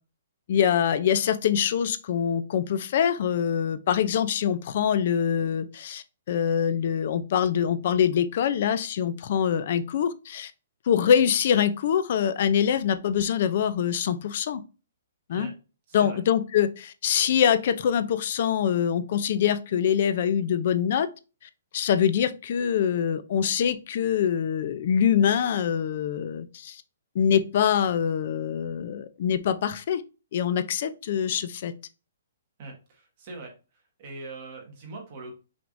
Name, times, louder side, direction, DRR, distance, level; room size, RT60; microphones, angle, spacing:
voice 1, 0.5-10.5 10.9-14.6 15.3-15.5 15.9-21.1 21.7-26.8 27.1-30.0 30.3-31.7, left 8 dB, 35° left, 13 dB, 0.4 m, -24 dB
voice 2, 15.9-16.2 32.6-35.3, right 3 dB, 25° right, 0 dB, 1.5 m, -42 dB
5.9 x 3.5 x 2.5 m, 0.32 s
hypercardioid pair, 180°, 0 cm